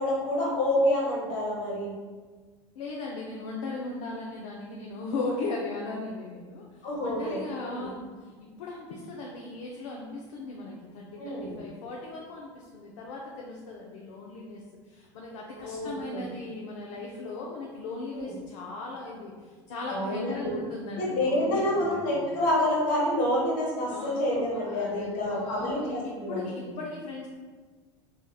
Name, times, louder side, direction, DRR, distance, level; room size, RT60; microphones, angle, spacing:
voice 1, 0.0-1.9 6.8-7.9 11.2-11.6 15.5-16.2 18.1-18.3 19.9-20.5 21.0-26.7, left 1 dB, 55° left, -4 dB, 1.2 m, -28 dB
voice 2, 2.8-22.2 23.8-27.3, left 3 dB, 75° left, -2 dB, 0.5 m, -38 dB
3.2 x 2.7 x 2.2 m, 1.4 s
hypercardioid pair, 95°, 16 cm